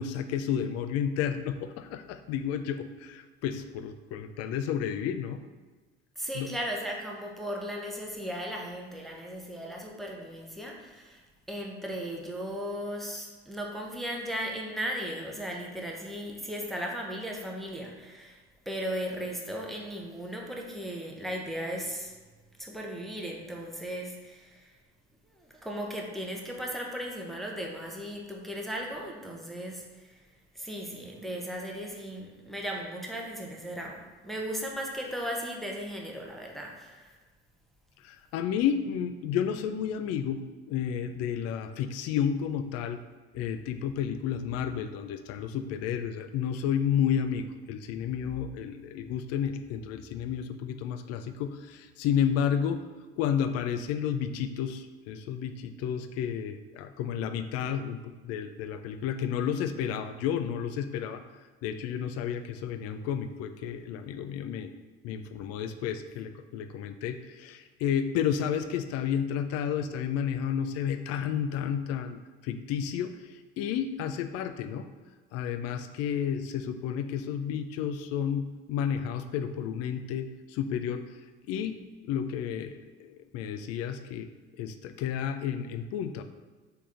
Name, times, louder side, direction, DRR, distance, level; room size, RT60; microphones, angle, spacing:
voice 1, 0.0-5.4 6.3-6.5 38.0-40.4 40.7-43.0 43.3-52.8 53.2-61.2 61.6-64.7 65.0-74.9 75.3-81.0 81.5-81.8 82.0-84.3 84.6-86.2, left 8 dB, 50° left, 10 dB, 0.4 m, -31 dB
voice 2, 6.2-11.2 11.5-18.4 18.7-22.1 22.6-24.7 25.4-30.2 30.5-37.1, equal, ahead, -1 dB, 0.6 m, -36 dB
4.3 x 3.5 x 2.5 m, 1.3 s
hypercardioid pair, 60°, 33 cm